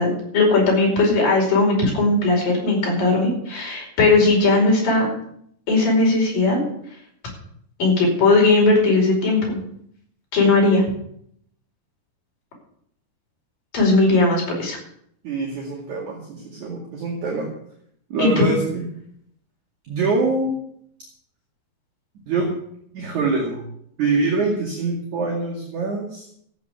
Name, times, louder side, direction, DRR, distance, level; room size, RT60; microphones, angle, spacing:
voice 1, 0.0-5.1 5.7-6.6 7.8-9.6 10.3-10.8 13.7-14.8 18.2-18.5, left 3 dB, 50° left, -1 dB, 6.6 m, -18 dB
voice 2, 15.2-17.5 18.1-18.8 19.9-20.6 22.3-22.5 22.9-23.7 24.0-26.2, right 3 dB, 50° right, -1 dB, 3.2 m, -24 dB
14.5 x 9.4 x 6.8 m, 0.70 s
omnidirectional pair, 5.0 m